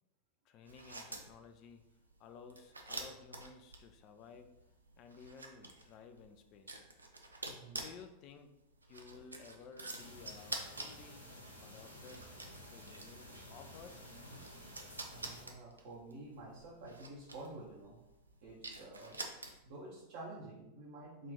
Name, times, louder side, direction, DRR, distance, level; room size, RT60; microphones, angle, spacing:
voice 1, 0.4-1.8 2.2-4.5 5.0-6.8 7.7-8.5 8.9-11.3 11.6-12.2 12.7-14.0, left 5 dB, 40° left, 8 dB, 0.4 m, -55 dB
sound 1, 0.6-19.9, right 2 dB, 80° right, 0.4 m, -49 dB
voice 2, 7.5-7.8 15.1-18.0 18.4-19.2 19.6-21.3, right 2 dB, 50° right, -4 dB, 0.7 m, -50 dB
sound 2, 9.9-15.4, equal, 85° left, 0.6 m, -53 dB
3.6 x 2.4 x 3.4 m, 0.92 s
figure-of-eight pair, 90°, 0 cm